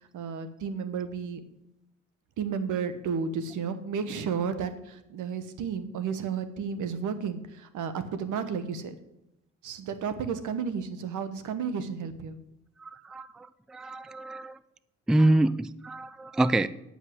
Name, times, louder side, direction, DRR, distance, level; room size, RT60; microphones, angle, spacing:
voice 1, 0.1-1.4 2.4-8.9 9.6-12.4, right 6 dB, 80° right, 11 dB, 1.1 m, -32 dB
voice 2, 12.8-14.6 15.1-16.7, right 1 dB, ahead, 16 dB, 0.3 m, -26 dB
9.5 x 5.5 x 7.8 m, 0.85 s
cardioid pair, 90°, 30 cm